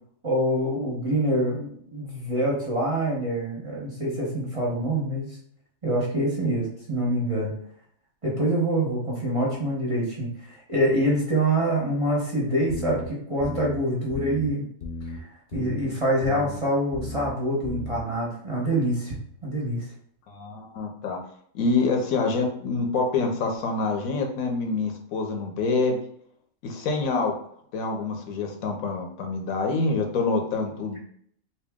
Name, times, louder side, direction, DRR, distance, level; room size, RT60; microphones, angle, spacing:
voice 1, 0.2-5.3 5.8-7.5 8.2-13.0 13.3-14.6 15.2-19.1 19.4-19.9, right 1 dB, 30° right, -5 dB, 0.8 m, -25 dB
sound 1, 12.7-13.0 13.4-13.8 14.1-14.5 14.8-15.2 15.5-15.9 16.2-16.6 16.9-17.3 17.6-18.0, left 2 dB, 60° left, 0.6 m, -35 dB
voice 2, 20.3-21.2 21.5-26.0 26.6-27.3 27.7-31.0, left 3 dB, 85° left, 3 dB, 1.1 m, -26 dB
2.9 x 2.7 x 3.5 m, 0.65 s
omnidirectional pair, 1.4 m